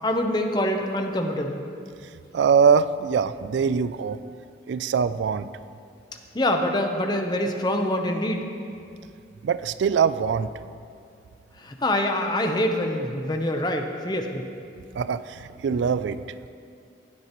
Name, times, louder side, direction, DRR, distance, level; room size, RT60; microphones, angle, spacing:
voice 1, 0.0-1.7 6.3-8.5 11.6-14.4, left 1 dB, 25° left, 4 dB, 0.8 m, -25 dB
voice 2, 2.3-4.2 4.7-5.5 9.4-10.5 15.0-16.2, right 6 dB, 75° right, 15 dB, 0.3 m, -22 dB
16.0 x 9.8 x 3.0 m, 2.4 s
head